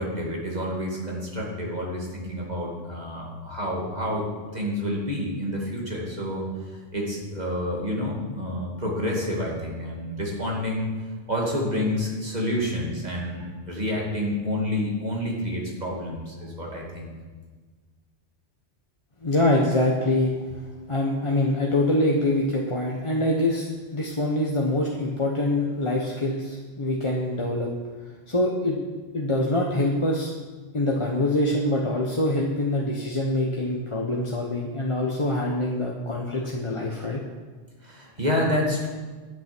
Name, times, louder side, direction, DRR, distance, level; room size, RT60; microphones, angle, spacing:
voice 1, 0.0-4.3 4.5-11.0 11.3-17.1 37.8-38.9, left 1 dB, 35° right, -3 dB, 2.6 m, -29 dB
voice 2, 19.2-20.3 20.9-27.7 28.3-28.8 29.1-30.3 30.7-37.2, left 1 dB, 30° left, -2 dB, 1.0 m, -24 dB
11.0 x 8.5 x 6.1 m, 1.4 s
omnidirectional pair, 1.2 m